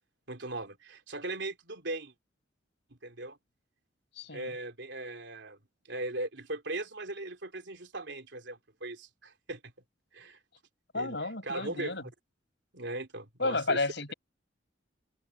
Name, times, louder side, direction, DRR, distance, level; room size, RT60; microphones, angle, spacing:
voice 1, 0.3-2.1 3.0-3.4 4.3-5.6 5.9-9.6 10.1-10.4 10.9-12.1 12.7-13.8, right 2 dB, 75° right, 3.1 m, -39 dB
voice 2, 4.2-4.5 10.9-12.0 13.4-14.1, left 3 dB, 70° left, 6.0 m, -32 dB
open air
head